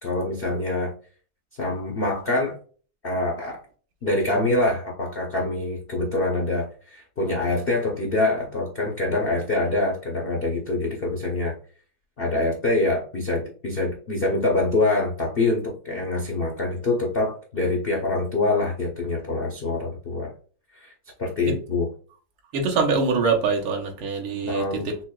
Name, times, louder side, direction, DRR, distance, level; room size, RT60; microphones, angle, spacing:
voice 1, 0.0-0.9 1.6-2.5 3.0-3.6 4.0-11.5 12.2-20.3 20.8-20.9 21.2-21.9 24.4-24.9, left 2 dB, 75° left, 0.5 m, -25 dB
voice 2, 22.5-25.0, right 4 dB, 80° right, 1.7 m, -24 dB
5.9 x 2.2 x 2.3 m
omnidirectional pair, 2.2 m